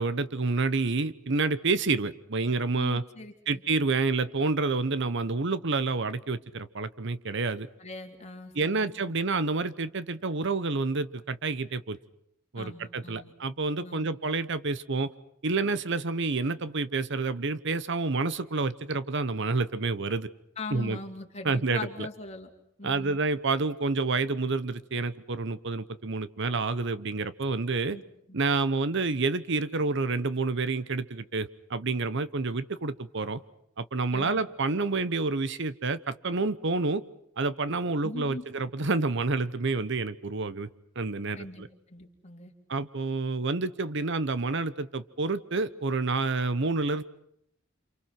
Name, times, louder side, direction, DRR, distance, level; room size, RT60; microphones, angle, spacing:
voice 1, 0.0-3.0 3.5-7.7 8.5-12.0 12.5-15.1 15.4-20.3 20.7-21.0 21.4-22.1 22.8-28.0 28.3-33.4 33.8-37.0 37.4-40.7 41.0-41.7 42.7-47.0, right 3 dB, 60° right, 14 dB, 1.0 m, -28 dB
voice 2, 2.7-3.6 7.8-9.2 12.6-13.3 13.8-14.1 20.6-22.5 22.8-23.2 27.8-28.0 34.1-34.4 38.0-38.4 41.4-41.6 41.9-42.5, left 2 dB, 35° left, 3 dB, 3.2 m, -41 dB
29.0 x 27.5 x 6.0 m, 0.74 s
head